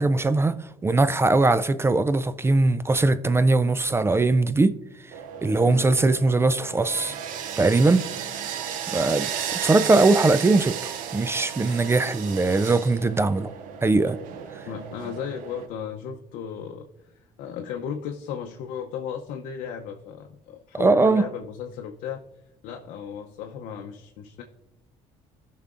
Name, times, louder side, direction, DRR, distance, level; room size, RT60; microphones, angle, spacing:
voice 1, 0.0-4.8 5.4-7.1 7.6-8.1 8.9-10.7 11.1-13.5 13.8-14.2 20.8-21.2, right 3 dB, 20° right, 0.4 m, -20 dB
sound 1, 5.1-15.7, right 9 dB, 75° right, 0.7 m, -34 dB
voice 2, 5.6-5.9 14.7-16.9 17.1-22.2 22.6-24.4, left 7 dB, 75° left, 0.7 m, -35 dB
14.0 x 5.7 x 2.5 m
supercardioid pair, 80°, 14 cm